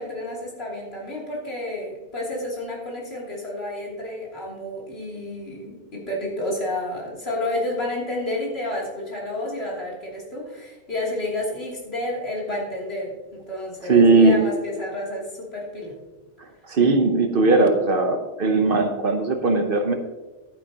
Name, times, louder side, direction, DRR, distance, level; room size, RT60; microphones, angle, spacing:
voice 1, 0.0-15.9, left 1 dB, 60° left, -4 dB, 3.2 m, -30 dB
voice 2, 13.9-14.4 16.7-19.9, right 3 dB, 55° right, 5 dB, 1.0 m, -18 dB
11.5 x 9.7 x 2.9 m, 1.2 s
omnidirectional pair, 1.2 m